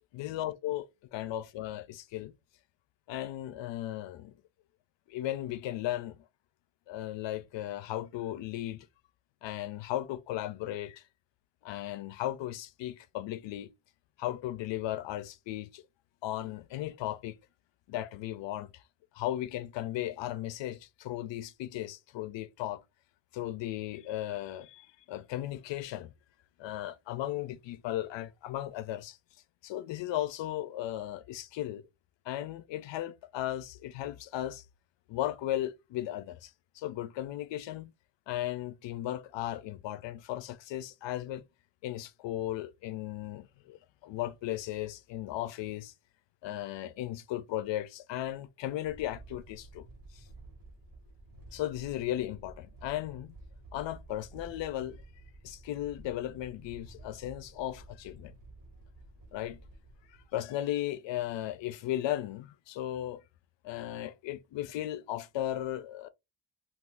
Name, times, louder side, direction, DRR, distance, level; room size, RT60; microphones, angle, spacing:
voice 1, 0.1-2.3 3.1-4.3 5.1-6.2 6.9-8.9 9.4-11.0 11.6-13.7 14.2-15.8 16.2-17.4 17.9-18.8 19.1-22.8 23.3-26.1 26.6-29.2 29.6-31.9 32.3-34.6 35.1-37.9 38.3-41.4 41.8-45.9 46.4-49.9 50.1-50.2 51.5-53.4 53.7-55.0 55.4-58.3 59.3-59.6 60.1-63.2 63.6-66.1, left 13 dB, 85° left, 0.5 m, -36 dB
sound 1, 48.8-60.3, right 2 dB, 50° right, 0.9 m, -52 dB
2.5 x 2.4 x 3.5 m
cardioid pair, 100°, 43 cm